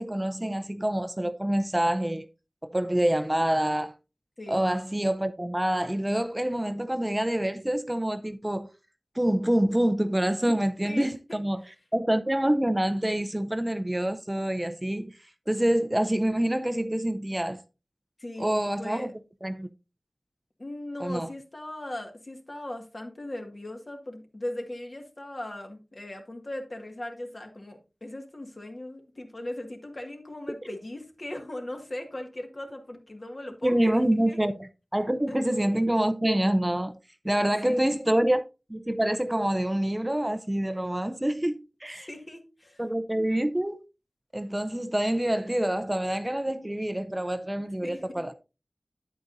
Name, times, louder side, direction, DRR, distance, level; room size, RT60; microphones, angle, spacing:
voice 1, 0.0-2.3 2.7-3.9 4.5-8.7 9.2-11.6 11.9-15.1 15.5-17.6 18.4-19.1 19.4-19.7 21.0-21.3 33.6-37.0 37.2-38.4 38.7-42.1 42.8-43.8 44.3-48.3, right 1 dB, 20° right, 0.6 m, -26 dB
voice 2, 10.8-11.4 18.2-19.1 20.6-34.4 35.3-35.4 37.3-37.9 38.1-38.2 42.0-42.8 47.8-48.2, left 1 dB, 50° left, 1.8 m, -39 dB
9.4 x 8.6 x 2.6 m
wide cardioid pair, 55°, 0 cm